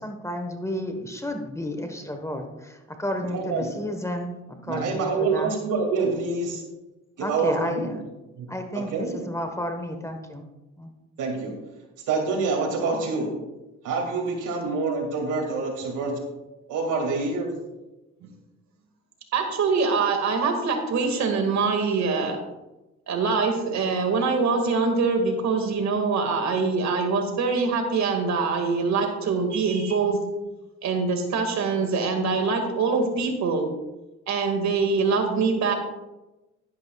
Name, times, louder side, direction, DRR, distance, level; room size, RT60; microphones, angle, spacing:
voice 1, 0.0-5.5 7.2-8.0 8.5-10.4 10.8-10.9, equal, 10° left, 5 dB, 1.2 m, -32 dB
voice 2, 3.3-3.7 4.7-6.6 7.2-7.9 8.4-8.5 8.7-9.2 11.2-11.5 12.1-13.3 13.8-16.2 16.7-17.6, right 4 dB, 85° right, 2 dB, 2.4 m, -26 dB
voice 3, 19.3-22.4 23.1-30.2 30.8-33.6 34.3-35.7, right 4 dB, 65° right, 4 dB, 2.0 m, -24 dB
11.5 x 11.0 x 2.4 m, 1.0 s
cardioid pair, 90°, 30 cm